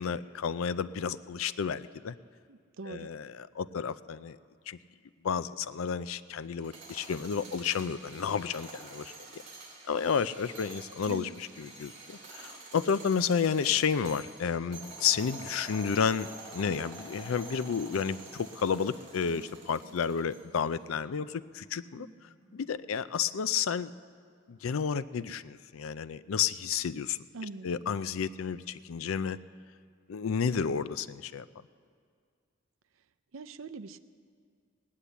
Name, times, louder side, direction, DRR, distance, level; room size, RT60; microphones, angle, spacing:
voice 1, 0.0-2.1 2.9-4.4 4.7-4.8 5.2-9.1 9.9-11.3 11.6-22.1 22.5-23.9 24.5-27.2 27.6-29.4 30.1-31.5, left 6 dB, 80° left, 16 dB, 0.4 m, -31 dB
voice 2, 2.5-3.1 11.1-11.3 27.3-27.7 33.3-34.0, right 3 dB, 75° right, 13 dB, 0.6 m, -42 dB
sound 1, 6.5-20.7, right 3 dB, 35° right, 3.2 m, -48 dB
sound 2, 14.7-22.7, right 1 dB, 15° right, 5.8 m, -59 dB
17.5 x 10.0 x 8.1 m, 2.1 s
head